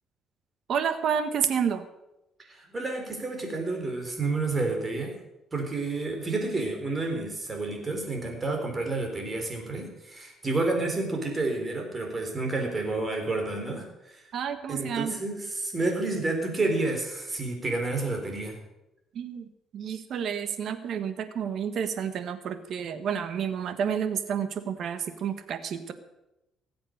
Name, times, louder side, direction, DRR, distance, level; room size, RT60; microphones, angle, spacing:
voice 1, 0.7-1.8 14.3-15.2 19.1-25.9, right 7 dB, 60° right, 10 dB, 1.4 m, -30 dB
voice 2, 2.4-5.1 5.5-14.3 14.7-18.6, right 2 dB, 25° right, 3 dB, 4.0 m, -30 dB
19.0 x 7.9 x 6.6 m, 0.91 s
cardioid pair, 120°, 0 cm